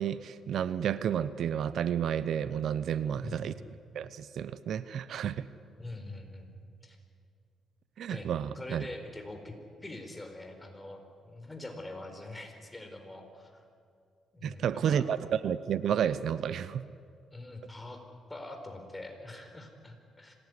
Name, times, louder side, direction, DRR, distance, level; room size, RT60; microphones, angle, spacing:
voice 1, 0.0-3.5 3.9-5.5 8.0-8.9 14.4-15.2 15.4-16.8, right 9 dB, 65° right, 15 dB, 0.8 m, -31 dB
voice 2, 3.1-3.6 5.8-6.5 6.8-7.0 8.1-13.6 14.3-15.1 17.3-18.0 18.3-20.3, left 2 dB, 15° left, 5 dB, 4.6 m, -44 dB
26.0 x 17.5 x 9.8 m, 2.3 s
cardioid pair, 90°, 0 cm